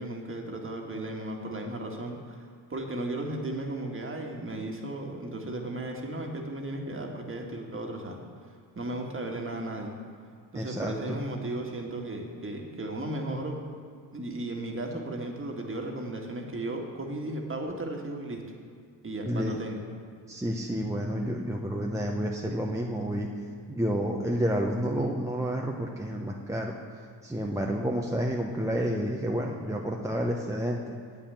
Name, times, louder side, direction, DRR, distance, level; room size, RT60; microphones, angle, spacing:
voice 1, 0.0-2.4 2.7-8.2 8.7-10.0 10.5-13.6 14.1-18.4 19.0-19.8, right 1 dB, 25° right, 1 dB, 1.7 m, -35 dB
voice 2, 10.5-11.2 19.3-19.6 20.3-23.3 23.7-26.7 27.2-30.9, equal, 5° right, -1 dB, 0.8 m, -30 dB
8.3 x 5.7 x 7.4 m, 2.2 s
hypercardioid pair, 60°, 48 cm